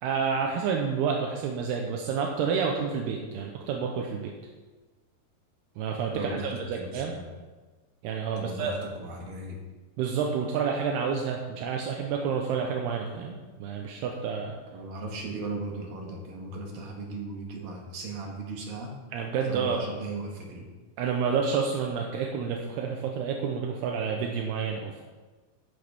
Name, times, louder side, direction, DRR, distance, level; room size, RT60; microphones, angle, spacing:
voice 1, 0.0-4.3 5.8-7.1 8.0-8.8 10.0-14.6 19.1-19.8 21.0-25.0, right 6 dB, 80° right, 1 dB, 2.9 m, -29 dB
voice 2, 6.1-7.2 8.4-9.6 14.7-18.9 19.5-20.7, right 2 dB, 65° right, 0 dB, 3.4 m, -37 dB
14.0 x 9.8 x 3.6 m, 1.3 s
omnidirectional pair, 4.7 m